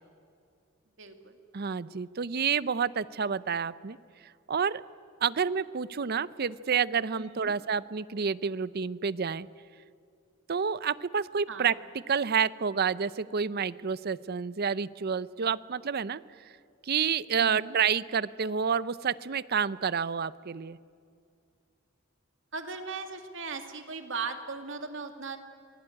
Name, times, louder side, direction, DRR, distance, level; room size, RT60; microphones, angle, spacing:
voice 1, 1.0-1.4 7.2-7.5 11.5-11.7 17.4-17.8 22.5-25.4, right 4 dB, 65° right, 6 dB, 2.4 m, -38 dB
voice 2, 1.5-4.0 4.5-4.8 5.2-9.5 10.5-11.7 12.1-16.5 16.8-20.8, right 6 dB, 50° right, 17 dB, 0.6 m, -29 dB
26.5 x 19.0 x 9.8 m, 2.4 s
head